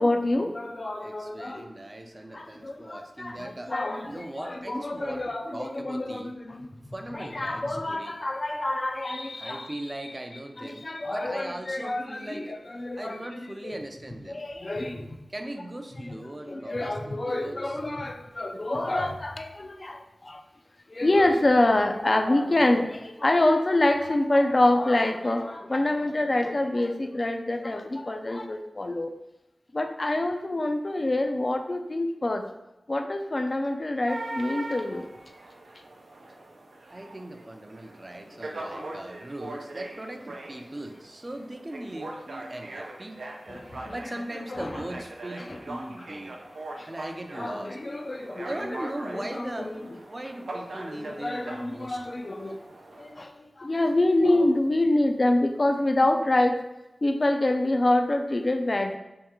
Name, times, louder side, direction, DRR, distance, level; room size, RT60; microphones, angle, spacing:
voice 1, 0.0-1.7 2.3-6.7 7.1-9.8 10.0-10.2 10.6-13.8 14.3-15.2 16.0-16.2 16.5-20.4 20.9-29.1 29.7-32.4 32.9-35.1 38.3-39.0 43.5-43.9 44.5-44.8 45.4-45.6 46.8-46.9 47.3-48.8 49.1-50.0 50.9-52.6 53.0-56.6 57.0-59.0, left 1 dB, 45° left, 5 dB, 0.3 m, -26 dB
voice 2, 1.0-3.7 4.1-6.3 6.9-8.2 9.4-12.6 13.0-14.4 15.3-17.8 36.9-43.2 43.9-46.4 46.9-47.8 48.4-49.7 50.1-52.0, right 1 dB, 30° right, 5 dB, 0.4 m, -39 dB
sound 1, 34.1-53.1, right 2 dB, 85° right, 0.5 m, -41 dB
3.5 x 3.1 x 2.9 m, 0.96 s
wide cardioid pair, 60°, 0 cm